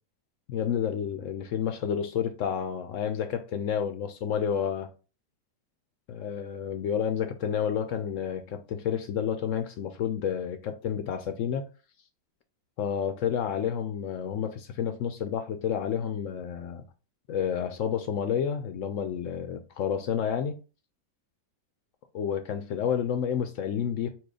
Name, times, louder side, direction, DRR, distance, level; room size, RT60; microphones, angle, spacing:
voice 1, 0.5-4.9 6.1-11.6 12.8-16.8 17.3-20.6 22.1-24.1, left 8 dB, 75° left, 0.7 m, -30 dB
4.5 x 2.4 x 4.8 m
omnidirectional pair, 1.8 m